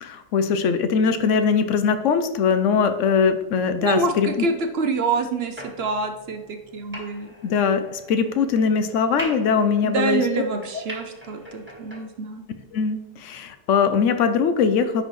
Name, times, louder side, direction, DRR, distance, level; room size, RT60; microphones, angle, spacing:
voice 1, 0.0-4.5 7.4-10.2 12.7-15.0, left 6 dB, 70° left, 10 dB, 0.9 m, -21 dB
voice 2, 3.8-7.3 9.8-12.4, right 4 dB, 60° right, 6 dB, 0.7 m, -26 dB
sound 1, 5.6-12.0, equal, 10° right, 1.4 m, -41 dB
10.0 x 4.3 x 3.1 m, 1.1 s
omnidirectional pair, 1.4 m